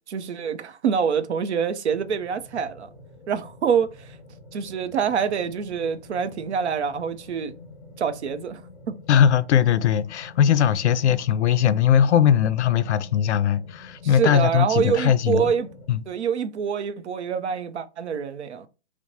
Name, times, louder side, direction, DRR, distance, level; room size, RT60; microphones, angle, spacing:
voice 1, 0.1-2.9 3.3-4.2 4.5-7.5 8.0-8.6 8.9-9.0 14.0-15.7 16.1-18.7, right 7 dB, 75° right, 0.6 m, -26 dB
sound 1, 1.9-15.9, left 2 dB, 30° left, 1.1 m, -47 dB
voice 2, 9.1-15.5 15.9-16.0, left 9 dB, 80° left, 0.5 m, -20 dB
4.6 x 2.1 x 2.7 m
hypercardioid pair, 160°, 34 cm